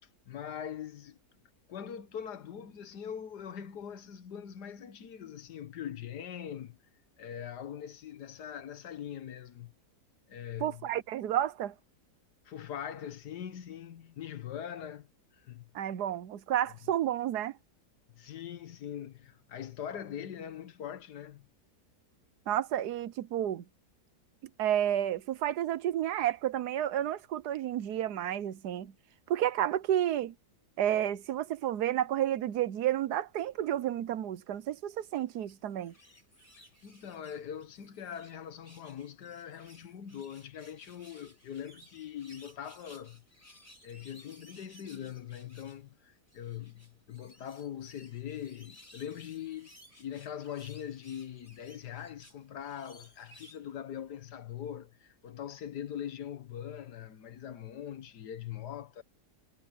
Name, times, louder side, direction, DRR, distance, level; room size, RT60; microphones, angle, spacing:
voice 1, 0.3-1.2 1.7-6.8 7.2-9.7 10.3-10.9 12.4-15.1 15.3-15.7 18.1-21.5 36.6-43.2 43.8-59.0, left 9 dB, 85° left, 1.7 m, -42 dB
voice 2, 10.6-11.7 15.7-17.6 22.5-23.6 24.6-28.9 29.3-30.3 30.8-35.9, right 11 dB, 80° right, 1.3 m, -31 dB
sound 1, 35.3-38.4 38.6-45.8 46.3-53.7 54.2-54.3, left 1 dB, 20° left, 7.1 m, -58 dB
omnidirectional pair, 1.7 m